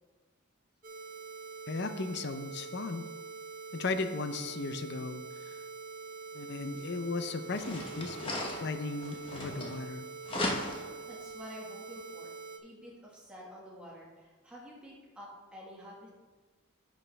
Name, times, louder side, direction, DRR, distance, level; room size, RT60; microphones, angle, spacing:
sound 1, 0.8-12.6, right 4 dB, 40° right, 0.7 m, -45 dB
voice 1, 1.7-3.0 3.7-5.6 6.3-10.1, left 3 dB, 50° left, 9 dB, 0.6 m, -36 dB
sound 2, 6.8-6.9 7.4-9.9 10.2-11.0, left 1 dB, 25° left, 1.1 m, -37 dB
voice 2, 11.1-12.3 12.6-16.1, equal, 5° right, -5 dB, 1.6 m, -49 dB
10.0 x 6.4 x 3.4 m, 1.3 s
head